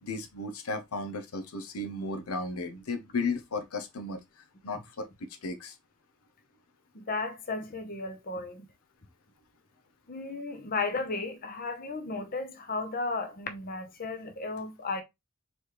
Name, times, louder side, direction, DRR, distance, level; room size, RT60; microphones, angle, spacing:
voice 1, 0.0-5.8, left 3 dB, 90° left, 0.8 m, -35 dB
voice 2, 6.9-8.7 10.1-15.0, left 3 dB, 45° left, 0.8 m, -34 dB
4.2 x 3.3 x 3.1 m
head